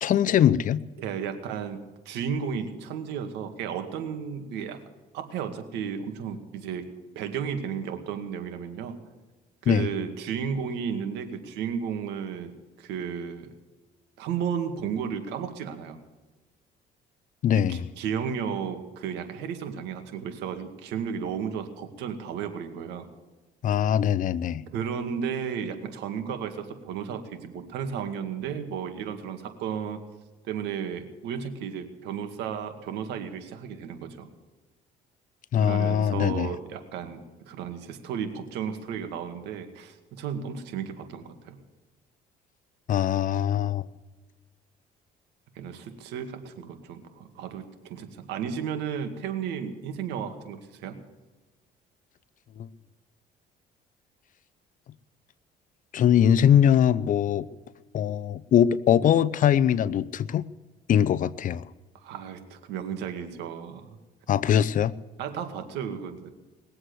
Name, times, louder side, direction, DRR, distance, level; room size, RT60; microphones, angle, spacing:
voice 1, 0.0-0.8 9.7-9.9 17.4-17.8 23.6-24.6 35.5-36.5 42.9-43.9 52.6-52.7 55.9-57.5 57.9-60.4 60.9-61.6 64.3-64.9, left 9 dB, 50° left, 19 dB, 0.7 m, -22 dB
voice 2, 1.0-4.8 5.1-6.9 7.2-9.0 9.6-12.5 12.8-13.5 14.2-16.0 17.5-23.1 24.7-30.0 30.5-34.3 35.6-37.2 37.5-41.6 45.6-51.0 62.0-64.0 65.2-66.3, right 7 dB, 85° right, 7 dB, 2.1 m, -33 dB
20.5 x 7.9 x 8.0 m, 1.2 s
cardioid pair, 110°, 17 cm